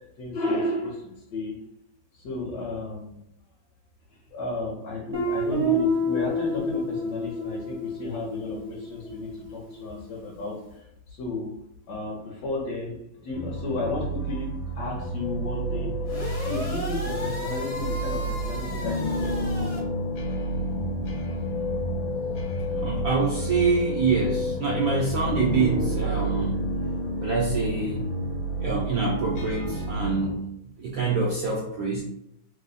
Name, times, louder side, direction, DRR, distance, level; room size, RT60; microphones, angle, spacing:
voice 1, 0.2-1.6 2.1-3.2 4.3-11.6 11.9-12.9 13.2-16.0 16.4-19.9, left 2 dB, 70° left, -4 dB, 1.3 m, -33 dB
Guitar, 5.1-9.8, equal, 40° right, 0.4 m, -28 dB
sound 1, 13.3-30.4, right 1 dB, 90° left, 1.4 m, -29 dB
sound 2, 16.0-19.8, equal, 45° left, 0.4 m, -36 dB
voice 2, 22.7-26.7 27.2-28.1 28.6-30.5 30.8-32.0, right 4 dB, 75° right, -3 dB, 0.8 m, -26 dB
3.3 x 2.0 x 3.9 m, 0.78 s
omnidirectional pair, 2.1 m